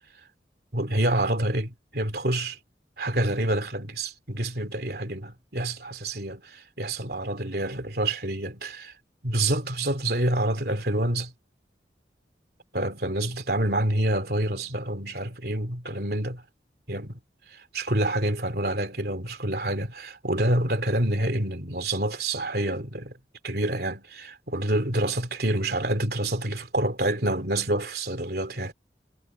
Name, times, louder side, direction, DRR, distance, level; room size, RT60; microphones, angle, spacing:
voice 1, 0.7-2.6 3.0-8.9 9.2-11.3 12.7-16.4 16.9-17.2 17.5-23.1 23.4-28.7, right 1 dB, 60° right, 3.2 m, -27 dB
head